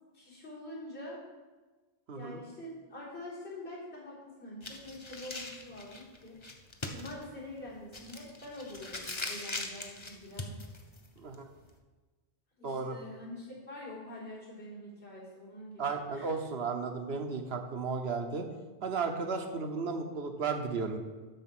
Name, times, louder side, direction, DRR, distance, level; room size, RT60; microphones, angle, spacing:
voice 1, 0.1-1.2 2.1-6.4 6.9-10.6 12.6-16.3, left 1 dB, 85° left, -8 dB, 4.1 m, -45 dB
voice 2, 2.1-2.4 11.2-11.5 12.6-13.0 15.8-18.5 18.8-21.0, right 4 dB, 70° right, 5 dB, 1.2 m, -34 dB
sound 1, 4.6-11.8, left 2 dB, 30° left, 0.9 m, -42 dB
12.5 x 4.2 x 6.0 m, 1.3 s
omnidirectional pair, 1.1 m